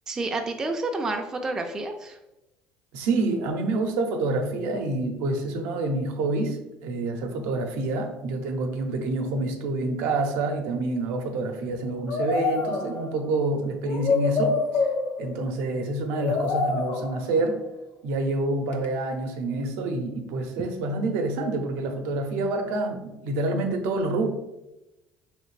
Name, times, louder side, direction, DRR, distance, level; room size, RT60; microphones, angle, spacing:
voice 1, 0.1-2.2, right 2 dB, 15° right, 3 dB, 0.3 m, -29 dB
voice 2, 2.9-14.9 15.2-17.6 18.0-24.3, right 2 dB, 80° right, 4 dB, 0.6 m, -27 dB
sound 1, 12.1-13.3 13.8-15.5 16.1-17.4 18.7-18.9, left 4 dB, 50° left, 0.5 m, -26 dB
3.2 x 3.2 x 3.2 m, 0.95 s
cardioid pair, 145°, 4 cm